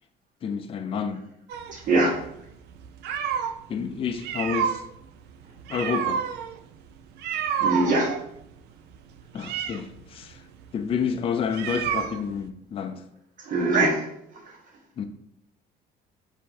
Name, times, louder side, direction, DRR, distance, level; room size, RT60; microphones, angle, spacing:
voice 1, 0.4-1.2 3.7-4.8 5.7-6.2 9.3-10.4 10.7-13.0 15.0-15.1, left 6 dB, 35° left, 0.4 m, -29 dB
sound 1, 1.5-3.6 4.1-12.5, right 8 dB, 80° right, 0.4 m, -30 dB
voice 2, 1.7-2.2 7.6-8.1 13.5-14.0, right 2 dB, 50° right, 1.3 m, -22 dB
4.3 x 2.6 x 4.1 m
cardioid pair, 110°, 17 cm